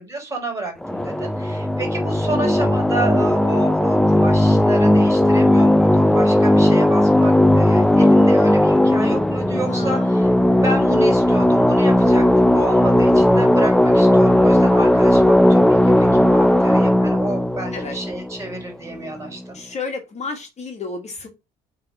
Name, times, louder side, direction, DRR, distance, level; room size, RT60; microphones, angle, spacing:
voice 1, 0.0-10.3 10.6-19.6, right 2 dB, 15° right, 3 dB, 4.6 m, -30 dB
sound 1, 0.8-18.9, left 1 dB, 5° left, 0.6 m, -16 dB
voice 2, 9.6-10.1 17.7-18.0 19.5-21.3, left 4 dB, 40° left, 4 dB, 2.2 m, -31 dB
7.6 x 4.0 x 5.8 m, 0.25 s
cardioid pair, 110°, 17 cm